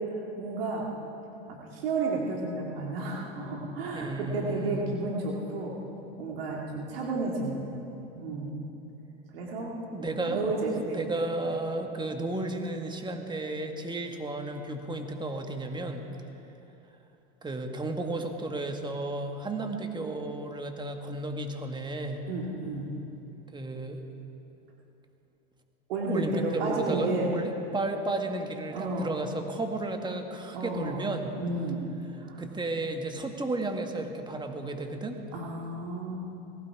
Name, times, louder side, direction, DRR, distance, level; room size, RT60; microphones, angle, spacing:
voice 1, 0.4-0.9 1.5-5.8 6.2-7.6 8.2-8.5 9.3-9.7 10.0-11.0 11.4-11.5 22.3-22.9 25.9-27.3 28.7-29.1 30.5-31.0 31.3-31.8 32.2-32.4 35.3-36.2, right 3 dB, 80° right, -2 dB, 2.3 m, -32 dB
voice 2, 3.9-5.0 9.9-16.0 17.4-22.2 23.5-24.0 26.1-31.3 32.4-35.2, right 2 dB, 15° right, 4 dB, 1.7 m, -33 dB
18.5 x 16.0 x 4.8 m, 2.9 s
hypercardioid pair, 90°, 29 cm